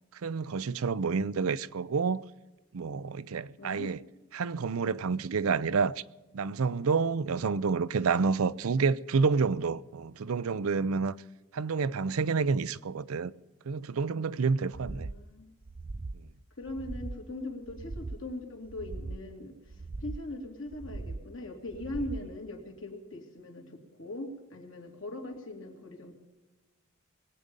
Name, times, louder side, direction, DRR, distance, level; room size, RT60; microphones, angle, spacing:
voice 1, 0.1-2.2 2.7-4.0 4.3-6.0 6.3-11.1 11.5-13.3 13.7-15.1, right 5 dB, 80° right, 0.5 m, -29 dB
voice 2, 3.6-3.9 7.3-7.6 14.6-15.5 16.6-26.1, left 1 dB, 65° left, 2.8 m, -41 dB
sound 1, 14.7-15.2 15.6-16.2 16.6-17.2 17.6-18.2 18.6-19.2 19.7-20.3 20.7-21.3 21.7-22.3, right 3 dB, 25° right, 0.4 m, -40 dB
21.5 x 8.7 x 5.3 m
head